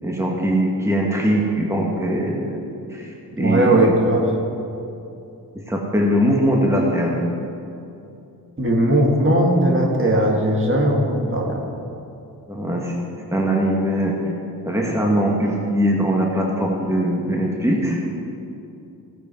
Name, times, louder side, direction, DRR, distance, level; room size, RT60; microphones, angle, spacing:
voice 1, 0.0-2.6 2.9-3.8 5.7-7.2 12.5-12.9 13.3-14.2 14.6-18.0, equal, 5° right, -2 dB, 2.0 m, -21 dB
voice 2, 3.4-4.2 8.6-11.6, right 1 dB, 30° right, -2 dB, 2.2 m, -18 dB
15.0 x 8.9 x 4.5 m, 2.7 s
cardioid pair, 45°, 40 cm